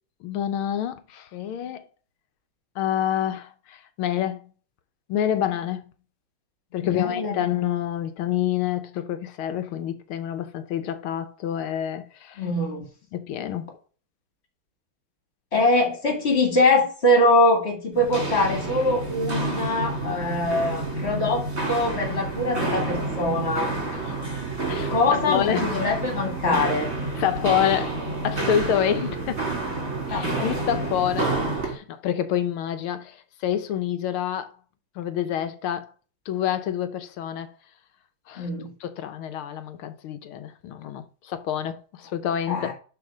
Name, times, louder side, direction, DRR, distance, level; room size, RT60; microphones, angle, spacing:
voice 1, 0.2-1.8 2.7-4.5 5.1-5.8 6.7-12.4 13.1-13.7 23.9-24.4 24.7-25.7 27.2-28.0 28.2-29.4 30.1-31.4 31.6-34.5 34.9-35.9 36.3-37.5 38.3-38.5 38.8-42.7, left 10 dB, 85° left, 1.8 m, -27 dB
voice 2, 6.8-7.4 12.4-12.8 15.5-23.7 24.9-26.9 30.1-30.7 38.4-38.7 42.5-42.7, left 2 dB, 30° left, 2.7 m, -23 dB
Walk footsteps, 17.9-31.8, right 2 dB, 40° right, 3.0 m, -29 dB
11.5 x 4.1 x 4.9 m
omnidirectional pair, 2.3 m